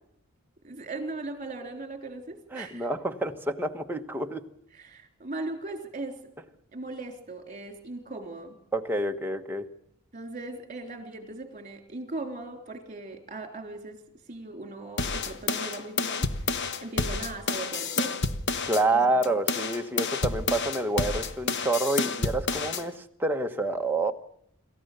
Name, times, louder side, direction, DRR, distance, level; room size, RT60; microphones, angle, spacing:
voice 1, 0.6-2.9 4.7-6.2 6.7-8.6 10.1-14.0 14.3-16.3 16.8-18.2 18.9-19.1, right 2 dB, 35° right, 5 dB, 3.7 m, -38 dB
voice 2, 2.5-4.4 8.7-9.7 18.6-24.1, right 2 dB, 10° right, 3 dB, 1.2 m, -28 dB
sound 1, 15.0-18.8 19.2-22.8, left 4 dB, 55° left, 1.1 m, -29 dB
27.0 x 14.0 x 6.8 m, 0.70 s
head